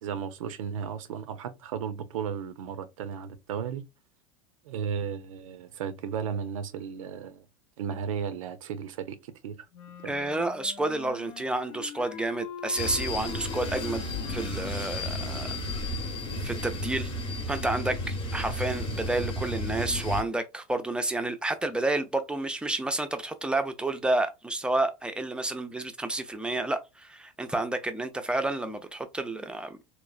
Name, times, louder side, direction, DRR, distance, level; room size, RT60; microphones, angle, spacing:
voice 1, 0.0-3.8 4.6-7.5 7.8-9.7 10.0-10.1, right 7 dB, 90° right, 0.5 m, -34 dB
Wind instrument woodwind instrument, 9.7-15.6, left 8 dB, 75° left, 0.5 m, -44 dB
voice 2, 10.0-14.0 14.3-15.5 16.4-17.1 17.5-29.8, right 2 dB, 5° right, 0.4 m, -30 dB
sound 1, 12.8-20.2, left 1 dB, 30° left, 0.8 m, -33 dB
3.1 x 2.0 x 2.3 m
supercardioid pair, 115°, 17 cm